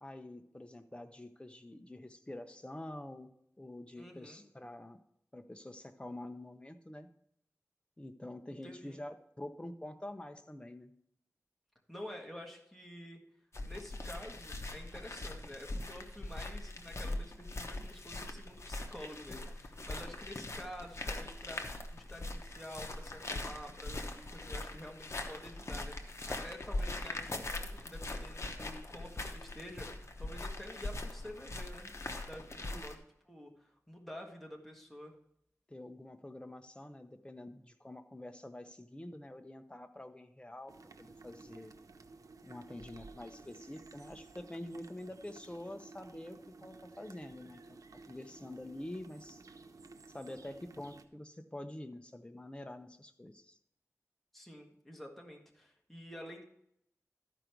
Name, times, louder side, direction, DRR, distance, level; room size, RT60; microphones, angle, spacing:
voice 1, 0.0-5.0 5.3-7.1 8.0-10.9 32.7-32.8 35.7-41.7 42.4-47.8 48.1-49.4 50.1-53.6, left 1 dB, 20° left, 7 dB, 0.8 m, -47 dB
voice 2, 4.0-4.4 8.6-9.0 11.9-13.2 13.7-21.6 21.9-32.0 32.2-35.1 54.3-56.4, equal, 5° left, 0 dB, 1.7 m, -49 dB
sound 1, 13.5-32.9, left 2 dB, 55° left, 0.9 m, -41 dB
sound 2, 40.7-51.1, right 3 dB, 90° right, 0.6 m, -54 dB
13.0 x 5.1 x 4.6 m, 0.74 s
wide cardioid pair, 85°, 6 cm